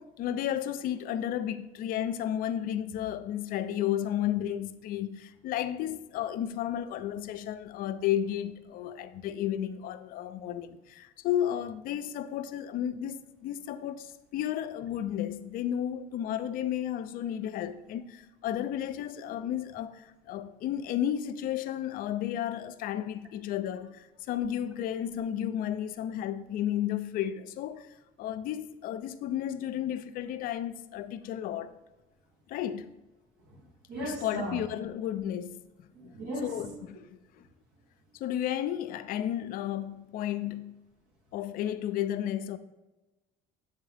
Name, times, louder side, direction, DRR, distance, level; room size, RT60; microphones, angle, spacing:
voice 1, 0.0-31.8 32.5-32.9 34.0-35.9 36.4-37.0 37.4-37.5 38.1-40.7 41.3-42.6, left 11 dB, 60° left, 0.5 m, -33 dB
voice 2, 33.9-34.6 35.9-36.5, right 1 dB, 75° right, 1.3 m, -36 dB
7.9 x 3.6 x 3.4 m
supercardioid pair, 100°, 17 cm